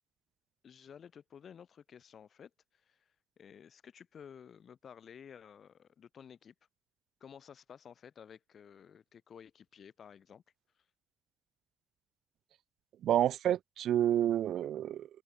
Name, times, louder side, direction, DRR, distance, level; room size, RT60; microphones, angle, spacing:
voice 1, 0.6-3.1 3.4-6.5 7.2-10.4, left 7 dB, 55° left, 6.5 m, -53 dB
voice 2, 13.0-15.1, right 11 dB, 75° right, 0.4 m, -29 dB
cardioid pair, 90°, 0 cm